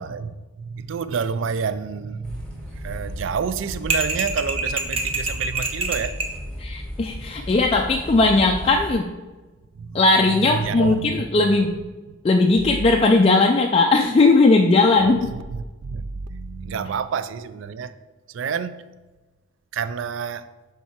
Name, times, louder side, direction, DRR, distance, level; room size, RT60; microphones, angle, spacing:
voice 1, 0.0-6.1 9.8-10.0 10.6-11.2 15.0-15.1 15.8-17.9 18.3-18.8 19.7-20.4, right 6 dB, 70° right, 0.3 m, -29 dB
sound 1, 2.2-8.9, equal, 5° left, 1.1 m, -35 dB
sound 2, 3.9-6.4, right 3 dB, 30° right, 0.6 m, -25 dB
voice 2, 6.6-9.1 9.9-11.7 12.2-15.3, left 3 dB, 30° left, 0.3 m, -18 dB
7.4 x 3.6 x 4.4 m
head